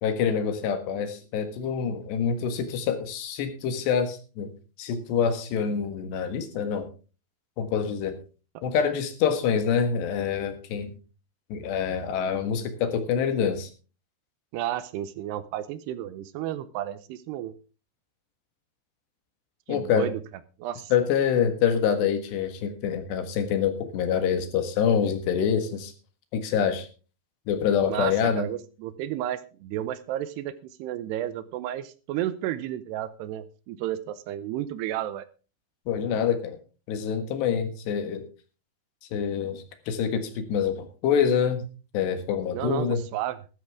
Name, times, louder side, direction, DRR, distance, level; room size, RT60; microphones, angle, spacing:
voice 1, 0.0-4.5 4.8-6.9 7.6-8.1 8.6-10.9 11.5-13.7 19.7-20.1 20.9-25.9 26.3-26.9 27.5-28.5 35.9-36.6 36.9-38.3 39.1-41.7 41.9-43.0, left 7 dB, 70° left, 8 dB, 3.7 m, -26 dB
voice 2, 14.5-17.5 19.7-20.2 20.6-20.9 27.9-30.5 30.8-35.3 42.5-43.4, right 12 dB, 80° right, 15 dB, 2.6 m, -32 dB
13.5 x 13.5 x 3.6 m, 0.34 s
omnidirectional pair, 5.2 m